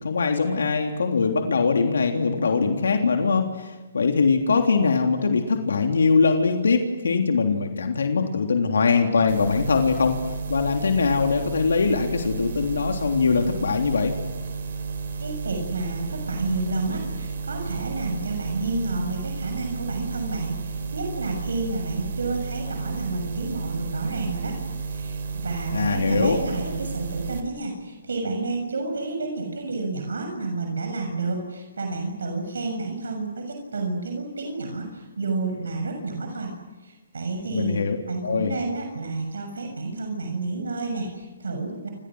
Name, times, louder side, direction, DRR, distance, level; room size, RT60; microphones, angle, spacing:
voice 1, 0.0-10.2 10.5-14.1 25.7-26.4 37.5-38.0 38.2-38.5, left 4 dB, 85° left, 3 dB, 3.4 m, -22 dB
sound 1, 9.3-27.4, right 4 dB, 65° right, 4.4 m, -32 dB
voice 2, 15.2-24.5 24.9-36.5 36.8-37.8 38.1-41.9, right 3 dB, 90° right, 4 dB, 6.8 m, -30 dB
29.0 x 29.0 x 6.4 m, 1.2 s
hypercardioid pair, 155°, 0 cm